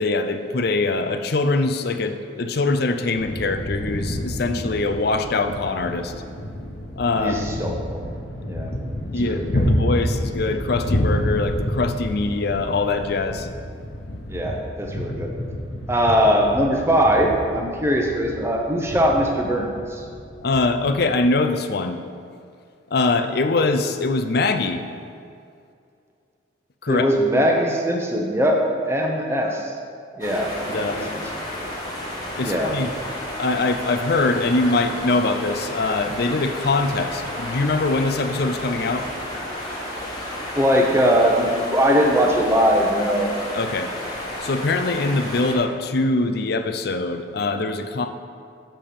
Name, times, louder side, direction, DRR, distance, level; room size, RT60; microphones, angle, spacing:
voice 1, 0.0-6.1 7.0-7.4 9.1-13.5 20.4-22.0 22.9-24.8 26.8-27.1 30.7-31.1 32.4-32.9 33.3-39.1 43.5-43.9 44.4-48.1, left 3 dB, 50° left, 7 dB, 0.5 m, -23 dB
sound 1, 3.1-21.1, equal, 70° left, 1.0 m, -29 dB
voice 2, 7.2-8.0 8.5-8.7 9.3-9.7 14.3-15.3 15.9-20.0 26.9-29.6 30.2-31.2 32.4-32.7 40.6-43.3, equal, 15° right, 1 dB, 0.8 m, -21 dB
sound 2, 30.2-45.6, left 1 dB, 20° left, 1.3 m, -32 dB
7.4 x 5.4 x 6.7 m, 2.4 s
head